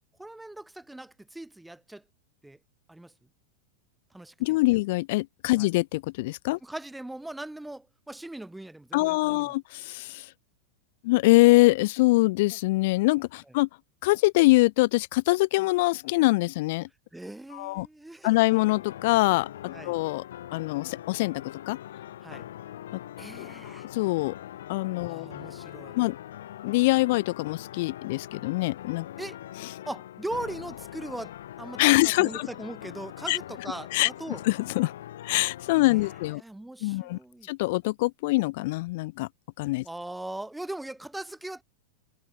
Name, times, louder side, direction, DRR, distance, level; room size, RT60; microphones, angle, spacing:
voice 1, 0.2-2.0 2.4-2.6 2.9-3.1 4.1-4.6 5.6-5.7 6.6-9.5 17.1-18.3 19.7-20.0 22.2-22.5 23.2-23.9 25.0-26.0 29.2-29.4 29.9-34.4 35.8-36.0 36.4-37.5 39.8-41.6, right 1 dB, 5° right, 6.0 m, -40 dB
voice 2, 4.4-6.6 8.9-10.3 11.0-13.7 14.0-16.9 17.5-17.9 18.2-20.2 20.5-21.8 22.9-23.0 23.4-23.5 23.9-24.3 24.7-25.3 25.9-26.2 26.6-29.1 31.8-32.5 33.3-33.4 33.9-34.1 34.4-34.9 35.2-36.4 36.8-37.2 37.5-39.3 39.6-39.8, left 21 dB, 60° left, 2.8 m, -24 dB
sound 1, 18.5-36.3, left 12 dB, 85° left, 6.7 m, -42 dB
supercardioid pair, 140°, 0 cm